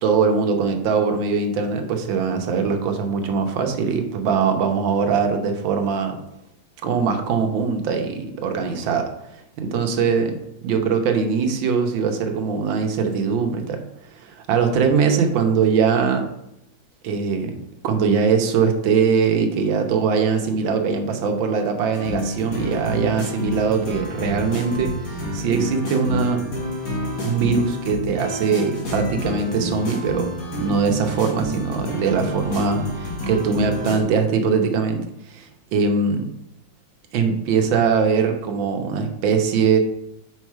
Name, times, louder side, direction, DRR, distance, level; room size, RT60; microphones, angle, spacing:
voice 1, 0.0-6.2 6.8-9.1 9.6-13.8 14.2-16.3 17.0-17.6 17.8-26.4 27.2-30.3 30.6-36.3 37.1-39.8, right 5 dB, 80° right, 5 dB, 1.6 m, -21 dB
sound 1, 21.9-34.0, equal, 50° left, 1.8 m, -29 dB
5.2 x 4.4 x 4.7 m, 0.83 s
omnidirectional pair, 2.1 m